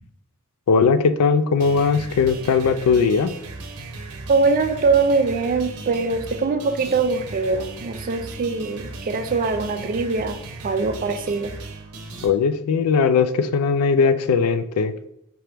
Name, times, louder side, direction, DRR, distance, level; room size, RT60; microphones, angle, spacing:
voice 1, 0.7-3.3 12.2-15.1, left 5 dB, 75° left, 11 dB, 0.4 m, -19 dB
sound 1, 1.6-12.3, right 3 dB, 85° right, 0.7 m, -37 dB
voice 2, 4.3-11.6, right 4 dB, 40° right, 7 dB, 0.4 m, -22 dB
4.5 x 2.9 x 3.3 m, 0.80 s
head